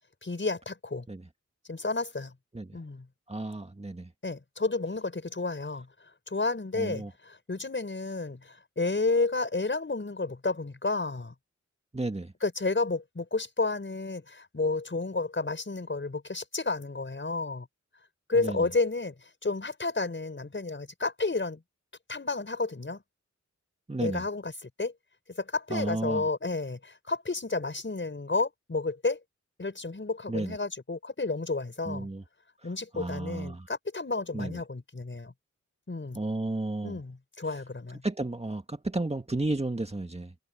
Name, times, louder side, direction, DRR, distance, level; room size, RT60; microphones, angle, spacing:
voice 1, 0.2-1.1 1.7-2.3 2.7-3.1 4.2-5.9 6.3-11.3 12.4-17.7 18.3-21.6 22.1-23.0 24.0-24.9 25.3-29.2 29.6-32.1 32.6-35.3 35.9-36.2 36.8-38.0, left 3 dB, 40° left, 6.0 m, -31 dB
voice 2, 3.3-4.1 6.7-7.1 11.9-12.3 18.4-18.7 23.9-24.2 25.7-26.2 30.3-30.6 31.9-32.2 32.9-33.7 34.3-34.6 36.2-37.0 38.0-40.3, right 2 dB, 20° right, 1.9 m, -32 dB
wide cardioid pair, 75°, 29 cm